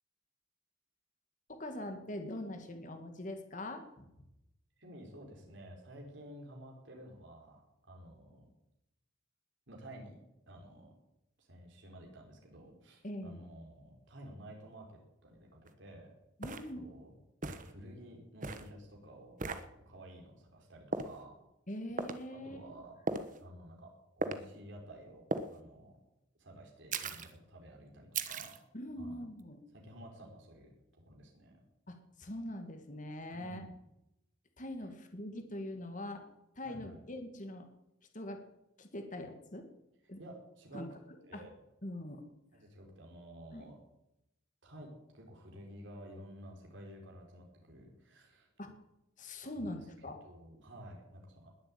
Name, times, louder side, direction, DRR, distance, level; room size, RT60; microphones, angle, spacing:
voice 1, 1.5-4.1 13.0-13.4 16.4-17.0 21.7-22.6 28.7-29.6 31.9-33.7 34.6-36.2 36.6-37.7 38.1-38.4 38.8-39.7 40.1-40.2 40.7-40.9 41.3-41.4 41.8-42.2 43.5-43.7 48.6-48.7 49.2-50.2, left 1 dB, 40° left, 6 dB, 2.1 m, -42 dB
voice 2, 4.8-8.5 9.7-10.1 10.5-10.9 11.4-16.1 16.7-17.1 17.5-19.4 19.8-21.3 22.3-23.0 23.4-25.9 26.4-28.6 29.0-29.2 29.7-31.5 33.3-33.8 36.6-37.0 40.2-40.9 41.2-41.5 42.5-43.7 44.6-48.5 49.5-49.7 50.2-51.5, right 1 dB, 65° right, 0 dB, 4.7 m, -52 dB
sound 1, 15.7-15.8 16.4-16.7 17.4-17.7 18.4-18.7 19.4-19.6 20.9-21.2 22.0-22.2 23.1-23.4 24.2-24.4 25.3-25.5 26.9-27.3 28.1-28.6, right 3 dB, 40° right, 1.2 m, -37 dB
20.5 x 7.8 x 8.8 m, 0.87 s
head